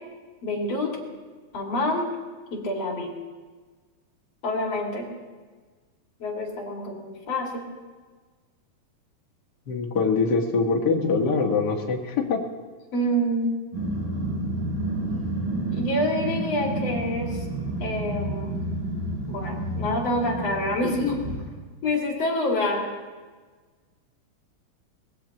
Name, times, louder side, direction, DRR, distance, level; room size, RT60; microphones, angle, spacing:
voice 1, 0.4-1.0 1.5-2.1 2.5-3.1 4.4-5.1 6.2-7.7 12.9-13.6 15.7-17.4 17.8-18.6 19.3-21.2 21.8-23.0, left 1 dB, 45° left, -1 dB, 3.1 m, -27 dB
voice 2, 9.7-12.4, left 4 dB, 85° left, 0 dB, 0.9 m, -23 dB
Growling, 13.7-21.4, right 1 dB, 60° right, 5.8 m, -30 dB
23.0 x 20.0 x 2.9 m, 1.4 s
omnidirectional pair, 4.4 m